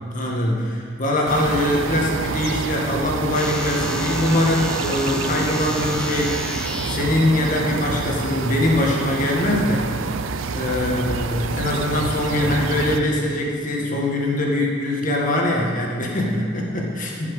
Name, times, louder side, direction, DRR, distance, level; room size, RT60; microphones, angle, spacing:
voice 1, 0.1-6.4 6.8-9.9 10.5-17.3, left 1 dB, 40° left, -1 dB, 1.6 m, -22 dB
sound 1, 1.3-13.0, right 4 dB, 85° right, 0.5 m, -27 dB
sound 2, 3.3-7.0, equal, 5° left, 0.7 m, -31 dB
15.0 x 5.9 x 4.8 m, 2.1 s
head